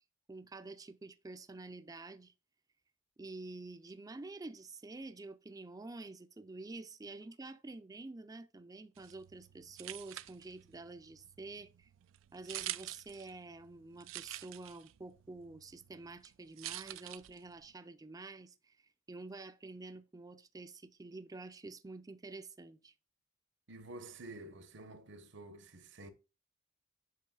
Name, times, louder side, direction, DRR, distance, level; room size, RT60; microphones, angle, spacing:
voice 1, 0.3-2.3 3.2-11.9 12.3-22.9, right 3 dB, 20° right, 0.4 m, -48 dB
sound 1, 9.0-17.7, right 15 dB, 90° right, 0.4 m, -48 dB
voice 2, 23.7-26.1, right 2 dB, 65° right, 1.0 m, -50 dB
8.4 x 5.4 x 2.3 m
head